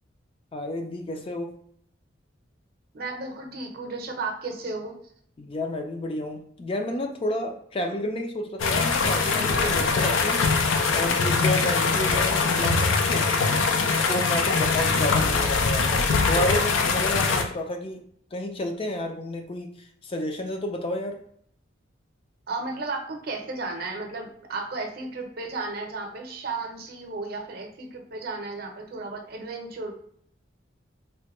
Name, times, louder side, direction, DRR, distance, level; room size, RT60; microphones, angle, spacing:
voice 1, 0.5-1.5 5.4-13.3 14.1-18.0 18.3-21.2, left 1 dB, 30° left, 4 dB, 0.4 m, -31 dB
voice 2, 2.9-5.0 22.5-29.9, right 3 dB, 55° right, 3 dB, 0.6 m, -34 dB
sound 1, 8.6-17.4, left 4 dB, 90° left, 0.4 m, -22 dB
3.3 x 2.2 x 2.9 m, 0.65 s
head